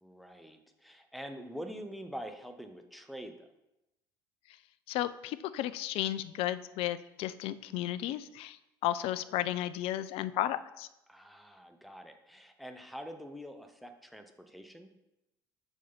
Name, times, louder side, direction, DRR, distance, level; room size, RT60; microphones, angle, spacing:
voice 1, 0.0-3.4 11.1-14.9, equal, ahead, 7 dB, 0.7 m, -45 dB
voice 2, 4.9-10.9, left 13 dB, 55° left, 15 dB, 0.4 m, -34 dB
4.6 x 4.5 x 5.5 m, 0.92 s
figure-of-eight pair, 55°, 11 cm